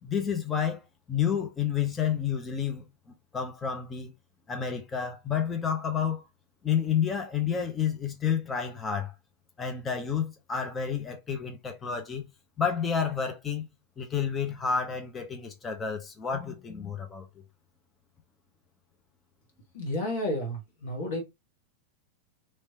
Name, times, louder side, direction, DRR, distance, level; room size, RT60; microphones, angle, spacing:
voice 1, 0.0-4.1 4.5-6.2 6.6-9.1 9.6-12.3 12.6-13.7 14.0-17.3, left 7 dB, 20° left, 0.9 m, -30 dB
voice 2, 19.7-21.2, left 1 dB, 55° left, 1.7 m, -31 dB
3.2 x 3.1 x 2.9 m
figure-of-eight pair, 90°, 0 cm